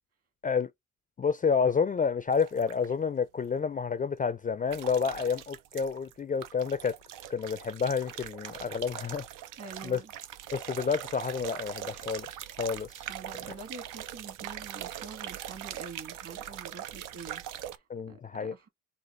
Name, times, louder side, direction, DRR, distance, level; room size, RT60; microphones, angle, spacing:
voice 1, 1.2-7.0 7.3-9.3 9.8-10.0 10.5-12.3 12.6-13.0 17.9-18.5, left 6 dB, 25° left, 0.4 m, -29 dB
sound 1, 2.3-2.9 4.7-6.1 6.4-17.8, right 11 dB, 85° right, 0.5 m, -41 dB
voice 2, 9.6-10.1 13.1-18.7, right 4 dB, 50° right, 1.9 m, -46 dB
4.1 x 2.5 x 4.4 m
cardioid pair, 80°, 31 cm